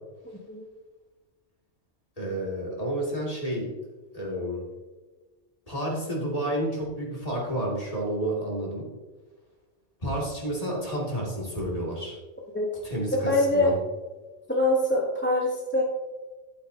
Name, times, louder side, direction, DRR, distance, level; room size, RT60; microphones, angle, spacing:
voice 1, 0.3-0.6 12.5-12.7 13.1-13.7 14.5-15.8, left 1 dB, 10° left, -2 dB, 1.0 m, -24 dB
voice 2, 2.2-3.7 4.1-4.6 5.7-8.8 10.0-12.2 12.8-13.8, right 1 dB, 30° left, -3 dB, 2.6 m, -30 dB
11.5 x 8.3 x 2.8 m, 1.2 s
omnidirectional pair, 1.2 m